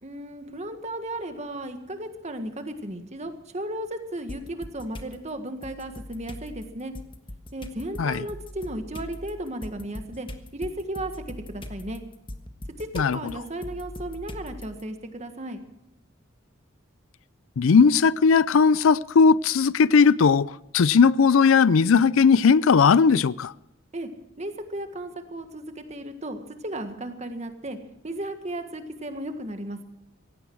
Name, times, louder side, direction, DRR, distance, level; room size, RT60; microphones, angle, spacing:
voice 1, 0.0-6.9 7.5-12.0 12.8-15.6 23.9-24.1 24.4-27.8 28.0-29.8, right 1 dB, 35° right, 1.6 m, -35 dB
sound 1, 4.3-5.1 5.6-14.8, left 1 dB, 25° left, 1.3 m, -41 dB
voice 2, 17.6-23.5, left 5 dB, 80° left, 0.4 m, -18 dB
17.5 x 15.5 x 4.7 m
head